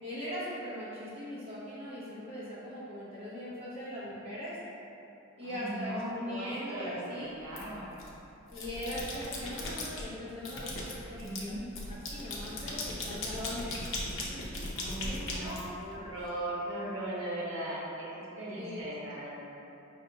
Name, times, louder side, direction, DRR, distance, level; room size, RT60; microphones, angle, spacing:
voice 1, 0.0-4.6 5.4-7.6 8.5-11.6 11.9-13.8 14.3-14.7 15.0-15.6 18.6-18.8, equal, 30° right, -10 dB, 0.9 m, -40 dB
voice 2, 5.4-7.9 11.2-11.6 12.6-12.9 14.7-18.1 18.4-19.4, right 1 dB, 75° right, -7 dB, 1.1 m, -38 dB
sound 1, 7.5-8.1 8.5-10.0 10.4-16.2, left 2 dB, 65° left, 0.7 m, -38 dB
5.7 x 2.7 x 2.8 m, 2.9 s
head